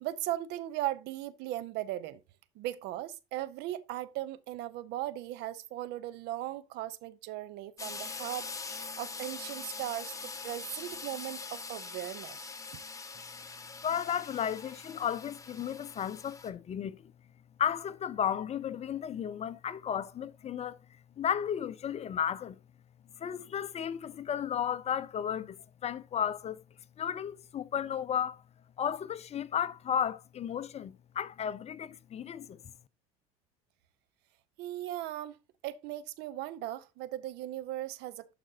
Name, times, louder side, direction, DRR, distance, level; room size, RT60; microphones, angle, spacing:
voice 1, 0.0-2.2 2.6-8.5 9.0-12.4 34.6-35.4 35.6-38.3, right 14 dB, 60° right, 0.7 m, -38 dB
sound 1, 7.8-16.5, left 4 dB, 15° left, 1.3 m, -43 dB
voice 2, 13.8-17.1 17.6-20.8 21.2-22.6 23.2-26.6 27.0-28.4 28.8-32.6, left 8 dB, 35° left, 0.6 m, -34 dB
12.0 x 5.1 x 2.7 m
hypercardioid pair, 80°, 19 cm